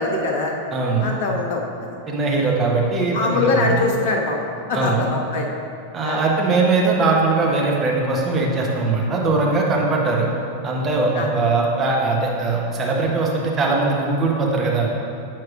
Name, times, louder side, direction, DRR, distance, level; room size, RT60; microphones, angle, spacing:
voice 1, 0.0-0.5 1.0-1.9 3.1-4.4 4.7-5.5 6.0-6.2 11.2-11.3, left 3 dB, 50° left, 1 dB, 0.8 m, -23 dB
voice 2, 0.7-1.1 2.1-3.8 4.7-5.0 5.9-10.3 10.6-14.9, right 3 dB, 25° right, -2 dB, 1.0 m, -20 dB
9.1 x 4.6 x 2.4 m, 2.6 s
figure-of-eight pair, 90°, 0 cm